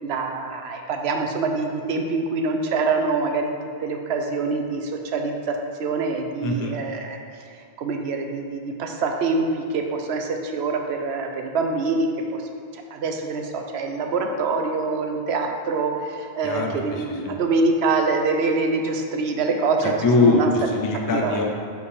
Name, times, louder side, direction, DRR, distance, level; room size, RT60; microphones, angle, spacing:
voice 1, 0.0-3.5 3.8-7.2 7.8-20.5 21.1-21.4, right 3 dB, 80° right, 4 dB, 0.9 m, -25 dB
voice 2, 6.4-6.8 16.4-17.3 19.8-21.4, left 3 dB, 30° left, 1 dB, 0.4 m, -22 dB
5.1 x 5.0 x 4.9 m, 2.2 s
omnidirectional pair, 1.1 m